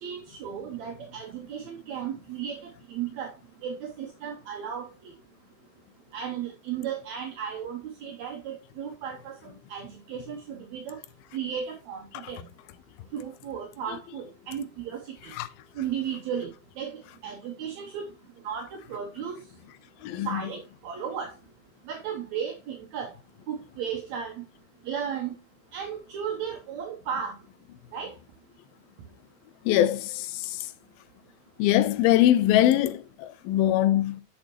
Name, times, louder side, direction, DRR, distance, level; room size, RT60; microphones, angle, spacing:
voice 1, 0.0-3.4 3.6-5.1 6.1-11.0 11.3-12.5 13.1-15.3 15.8-18.1 18.4-19.4 20.3-21.3 21.9-23.1 23.5-24.4 24.9-25.3 25.7-27.4 27.9-28.2, right 8 dB, 75° right, 1.7 m, -35 dB
voice 2, 20.0-20.4 29.7-30.7 31.6-34.2, left 13 dB, 80° left, 2.5 m, -22 dB
9.7 x 6.4 x 3.0 m
omnidirectional pair, 4.3 m